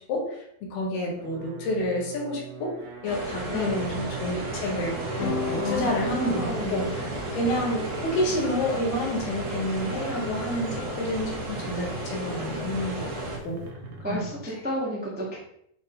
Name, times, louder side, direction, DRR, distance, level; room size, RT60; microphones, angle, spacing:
voice 1, 0.0-2.7 3.0-13.1 13.4-13.6 14.1-14.2, left 1 dB, 70° left, -2 dB, 3.5 m, -29 dB
sound 1, 1.2-14.5, right 3 dB, 80° right, 2.9 m, -40 dB
sound 2, 3.0-13.4, right 1 dB, 55° right, 2.0 m, -34 dB
voice 2, 3.5-4.0 5.5-6.7 14.0-15.4, equal, 5° right, -6 dB, 0.8 m, -31 dB
sound 3, 5.2-13.6, left 4 dB, 90° left, 3.3 m, -39 dB
8.8 x 4.1 x 4.0 m, 0.70 s
omnidirectional pair, 4.9 m